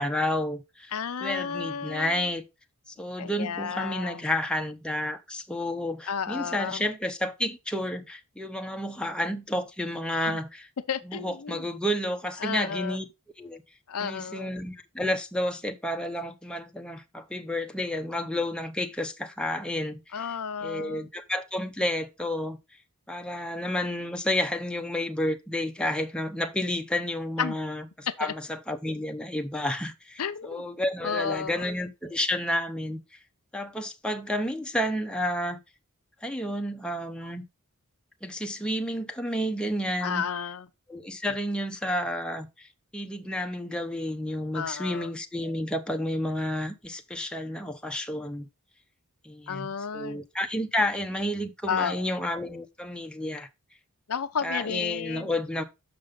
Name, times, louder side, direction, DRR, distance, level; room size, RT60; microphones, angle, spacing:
voice 1, 0.0-0.9 1.2-2.4 2.9-10.7 11.1-13.0 13.4-13.6 14.0-20.1 20.6-22.6 23.1-33.0 33.5-35.6 36.2-37.4 38.2-40.2 40.9-42.7 42.9-48.5 49.2-53.5 54.4-55.6, left 1 dB, 5° left, 0.8 m, -31 dB
voice 2, 0.9-2.2 3.2-4.2 6.1-6.8 10.2-10.4 10.9-11.7 12.4-13.0 13.9-14.5 20.1-21.1 27.4-27.6 28.2-28.3 30.2-30.6 31.0-31.7 40.0-40.7 44.5-45.1 49.5-50.2 51.7-52.1 54.1-55.3, left 7 dB, 75° left, 0.6 m, -32 dB
6.7 x 5.2 x 5.2 m
head